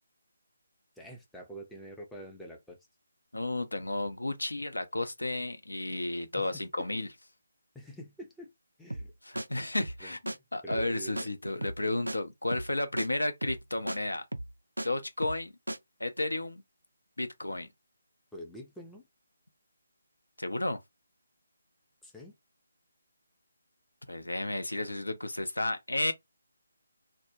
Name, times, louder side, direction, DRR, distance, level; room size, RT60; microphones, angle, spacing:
voice 1, 1.0-2.8 6.4-6.9 7.7-8.5 8.8-9.1 10.0-11.3 18.3-19.1 22.0-22.3, equal, 5° left, 0.4 m, -46 dB
voice 2, 3.3-7.1 9.2-14.2 14.8-15.5 16.0-16.6 17.2-17.7 20.4-20.8 24.1-26.1, left 2 dB, 75° left, 0.5 m, -32 dB
sound 1, 8.9-9.1 9.4-9.5 9.8-10.0 10.3-10.4 10.7-10.9 11.2-11.3 11.6-11.8 12.1-12.2 12.5-12.7 13.0-13.1 13.4-13.6 13.9-14.0 14.3-14.9 15.2-15.4 15.7-15.8, right 1 dB, 80° right, 0.3 m, -36 dB
2.1 x 2.0 x 2.9 m
figure-of-eight pair, 150°, 0 cm